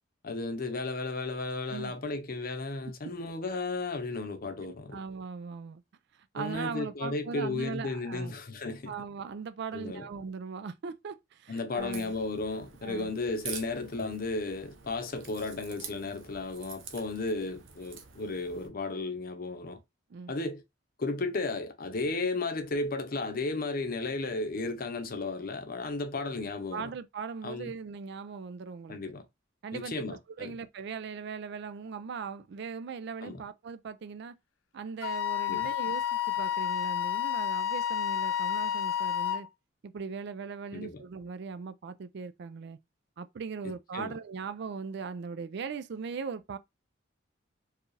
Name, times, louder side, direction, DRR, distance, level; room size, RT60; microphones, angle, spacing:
voice 1, 0.2-5.0 6.3-8.9 9.7-10.1 11.5-19.8 20.3-20.6 21.0-26.9 27.4-27.7 28.9-29.2 29.7-30.6 33.2-33.4 35.5-35.7 40.7-41.0 43.6-44.1, left 3 dB, 50° left, 0.8 m, -34 dB
voice 2, 4.9-5.8 6.3-8.3 8.9-12.1 12.8-13.1 20.1-20.3 26.7-29.0 29.6-29.9 30.4-34.3 34.7-39.5 39.8-42.8 43.2-46.6, right 5 dB, 60° right, 0.4 m, -39 dB
Crack, 11.8-18.7, right 7 dB, 80° right, 0.8 m, -47 dB
Wind instrument woodwind instrument, 35.0-39.5, left 10 dB, 85° left, 0.4 m, -30 dB
4.6 x 2.4 x 3.2 m
head